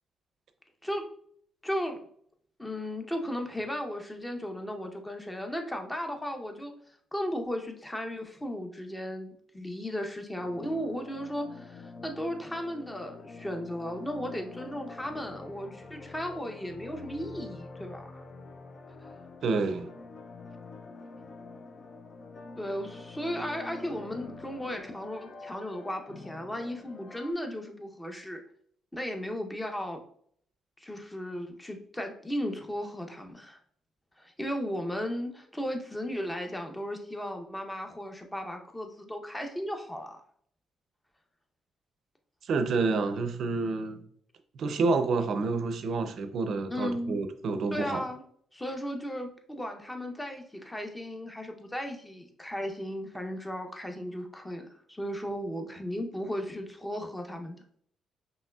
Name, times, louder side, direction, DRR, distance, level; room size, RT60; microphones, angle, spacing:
voice 1, 1.6-2.1 2.6-6.7 7.1-18.2 19.0-19.1 22.6-28.4 28.9-30.0 30.8-33.6 34.2-40.2 46.7-47.2 47.7-48.2 48.5-57.6, equal, 10° left, 0.7 m, -35 dB
sound 1, 10.4-27.3, left 3 dB, 45° left, 0.5 m, -46 dB
voice 2, 19.4-19.9 42.4-44.0 44.5-48.0, right 3 dB, 65° right, 0.5 m, -28 dB
5.4 x 3.0 x 2.3 m
cardioid pair, 90°, 0 cm